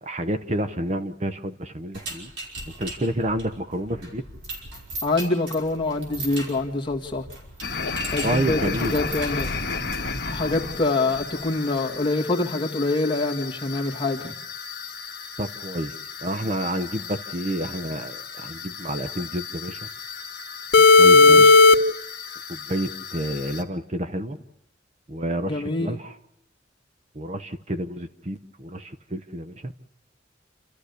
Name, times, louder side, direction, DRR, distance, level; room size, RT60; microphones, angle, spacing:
voice 1, 0.0-2.3 2.8-4.2 8.2-9.0 15.4-15.9 16.2-19.8 20.8-21.5 22.5-24.4 25.1-26.1 27.1-29.7, right 1 dB, 35° right, 9 dB, 0.9 m, -29 dB
sound 1, 1.9-10.2, right 2 dB, 70° right, 5.4 m, -38 dB
voice 2, 5.0-7.3 8.1-9.5 10.3-14.3 21.1-21.6 25.5-26.0, left 2 dB, 25° left, 0 dB, 2.0 m, -25 dB
sound 2, 7.6-23.6, left 3 dB, 55° left, 1.8 m, -22 dB
29.0 x 13.5 x 8.2 m, 0.82 s
head